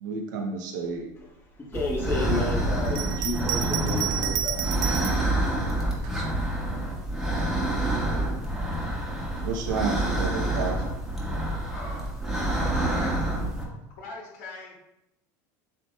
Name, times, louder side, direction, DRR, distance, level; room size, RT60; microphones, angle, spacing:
voice 1, 0.0-1.1 6.6-6.8 7.8-8.2 9.4-10.8, right 4 dB, 85° right, 2 dB, 0.7 m, -31 dB
voice 2, 1.6-4.7, left 2 dB, 25° left, -3 dB, 1.4 m, -31 dB
sound 1, 1.7-13.6, right 1 dB, 5° right, 1.2 m, -27 dB
Bell, 2.8-5.3 6.0-7.0, right 12 dB, 55° right, 0.4 m, -31 dB
voice 3, 11.3-12.0 12.5-13.2 14.0-14.8, left 2 dB, 70° left, -2 dB, 1.6 m, -41 dB
7.3 x 2.8 x 2.3 m, 0.86 s
supercardioid pair, 110°, 10 cm